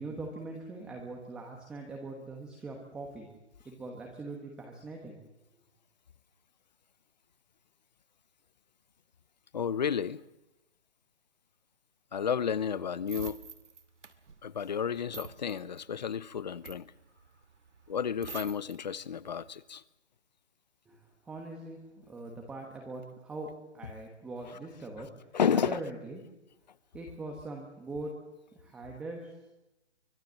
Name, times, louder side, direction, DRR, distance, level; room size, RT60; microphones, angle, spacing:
voice 1, 0.0-3.3 3.6-5.2 20.9-21.0 21.2-23.5 23.7-25.1 25.7-26.2 26.9-28.1 28.5-29.3, right 2 dB, 5° right, 1 dB, 1.1 m, -42 dB
voice 2, 9.5-10.2 12.1-13.4 14.4-16.9 17.9-19.8 25.3-25.8, left 7 dB, 40° left, 19 dB, 0.8 m, -31 dB
sound 1, 12.1-18.8 19.2-19.5, right 5 dB, 90° right, 2.4 m, -48 dB
24.5 x 22.0 x 7.5 m, 0.93 s
hypercardioid pair, 170°, 35 cm